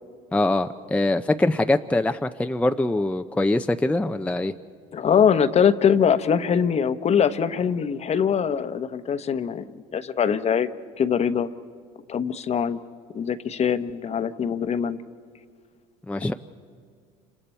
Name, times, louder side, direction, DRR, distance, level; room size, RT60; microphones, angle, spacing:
voice 1, 0.3-4.5 16.1-16.3, left 2 dB, 5° left, 7 dB, 0.6 m, -23 dB
voice 2, 4.9-9.6 9.9-10.7 11.0-11.5 12.1-12.8 13.1-15.0, left 7 dB, 35° left, 12 dB, 1.0 m, -22 dB
29.5 x 27.0 x 4.4 m, 2.1 s
hypercardioid pair, 80°, 18 cm